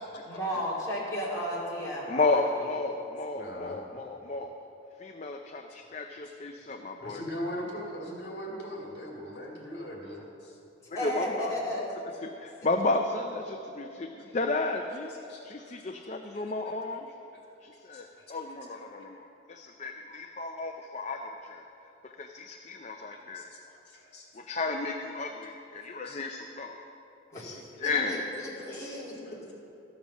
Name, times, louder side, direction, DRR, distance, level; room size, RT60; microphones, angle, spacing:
voice 1, 0.3-2.6 10.9-11.9 27.3-27.5 27.8-29.2, equal, 15° left, -8 dB, 2.8 m, -34 dB
voice 2, 2.1-4.5 5.0-7.2 10.9-11.6 12.2-15.1 15.4-17.1 17.6-21.7 22.0-23.4 24.5-26.8 27.3-28.2, left 3 dB, 35° left, 4 dB, 0.5 m, -33 dB
voice 3, 3.3-3.8 6.6-6.7 7.0-10.6 15.3-15.4 15.7-15.8 16.3-16.7 17.3-17.4 17.9-18.3 18.7-18.9 23.1-23.4 23.9-24.2 25.9-26.2 28.6-28.9 29.2-29.4, equal, 55° left, -2 dB, 2.4 m, -41 dB
13.5 x 7.3 x 6.1 m, 2.9 s
head